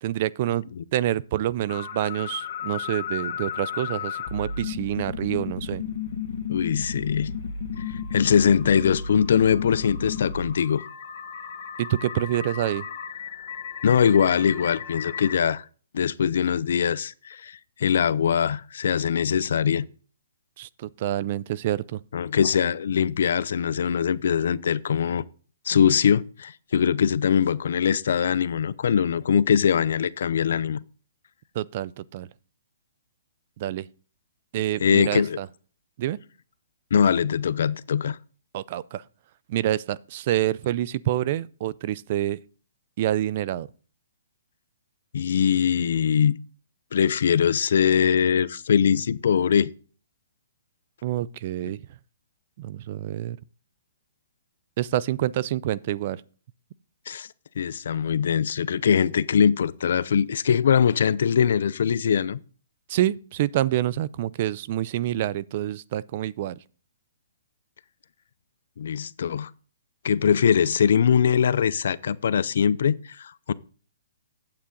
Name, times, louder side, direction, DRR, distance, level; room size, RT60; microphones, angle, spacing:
voice 1, 0.0-0.6 0.9-5.8 11.8-12.9 20.6-22.0 31.6-32.3 33.6-33.9 34.5-35.5 36.0-36.2 38.5-39.0 39.5-42.4 43.0-43.7 51.0-51.8 52.6-53.4 54.8-56.2 62.9-66.6, right 13 dB, 45° right, 0.4 m, -27 dB
sound 1, 1.7-15.4, left 6 dB, 45° left, 1.6 m, -33 dB
voice 2, 6.5-7.3 7.9-10.8 13.8-15.6 15.9-19.8 22.1-25.2 25.7-30.8 34.8-35.4 36.9-38.2 45.1-46.4 46.9-49.7 51.6-51.7 57.1-57.3 57.6-62.4 68.8-69.5 70.0-73.5, left 7 dB, 65° left, 0.5 m, -22 dB
8.8 x 8.2 x 3.8 m
hypercardioid pair, 150°, 0 cm